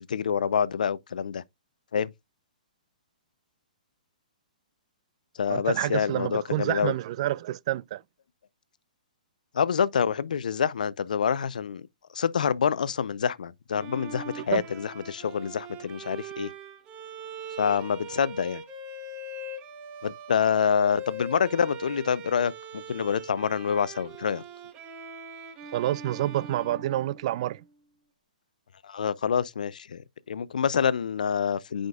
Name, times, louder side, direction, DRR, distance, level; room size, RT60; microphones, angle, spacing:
voice 1, 0.0-1.4 1.9-2.1 5.4-6.9 9.5-11.9 12.1-16.5 17.6-18.6 20.0-24.4 28.8-30.0 30.3-31.9, left 7 dB, 70° left, 0.5 m, -27 dB
voice 2, 5.5-8.0 14.5-14.6 25.7-27.6, right 14 dB, 45° right, 0.3 m, -28 dB
Bowed string instrument, 13.7-27.6, right 2 dB, 25° right, 1.4 m, -42 dB
9.0 x 5.1 x 2.3 m
hypercardioid pair, 130°, 4 cm